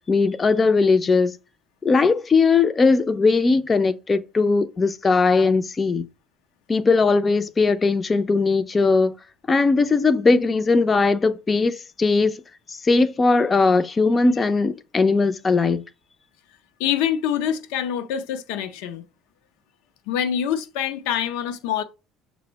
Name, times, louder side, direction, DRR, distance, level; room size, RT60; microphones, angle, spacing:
voice 1, 0.0-1.4 1.8-6.0 6.7-9.1 9.5-12.4 12.7-15.8, left 4 dB, 25° left, 0.4 m, -19 dB
voice 2, 16.8-19.0 20.1-21.8, left 9 dB, 85° left, 0.4 m, -25 dB
5.9 x 2.0 x 4.4 m
supercardioid pair, 105°, 0 cm